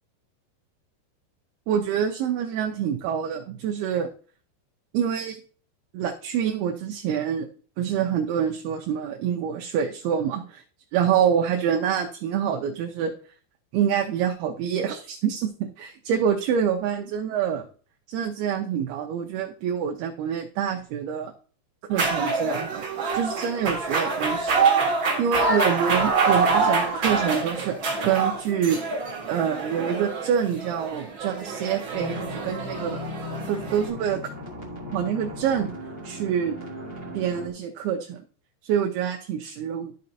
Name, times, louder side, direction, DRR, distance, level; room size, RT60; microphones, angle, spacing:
voice 1, 1.7-4.1 4.9-5.4 5.9-7.5 7.8-10.6 10.9-13.1 13.7-17.7 18.1-21.3 21.9-22.8 23.1-24.6 25.2-27.8 28.0-28.8 29.3-33.0 33.5-34.2 34.9-35.7 36.0-36.6 37.1-38.2 38.6-39.9, right 8 dB, 80° right, 3 dB, 2.4 m, -26 dB
sound 1, 21.9-33.9, right 4 dB, 50° right, 1.5 m, -26 dB
sound 2, 31.9-37.5, left 1 dB, 35° left, 1.8 m, -37 dB
13.5 x 5.2 x 2.8 m, 0.42 s
omnidirectional pair, 5.0 m